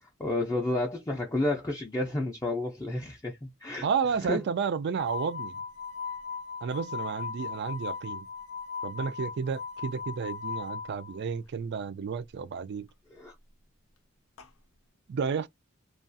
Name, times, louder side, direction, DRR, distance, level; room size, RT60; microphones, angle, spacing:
voice 1, 0.0-3.9 4.3-4.4 13.1-13.4, left 2 dB, 15° left, 0.4 m, -31 dB
voice 2, 3.8-5.6 6.6-8.3 8.8-12.9 15.1-15.5, right 6 dB, 55° right, 0.4 m, -31 dB
sound 1, 5.0-11.2 14.4-14.5, left 5 dB, 75° left, 0.5 m, -38 dB
2.4 x 2.3 x 2.6 m
head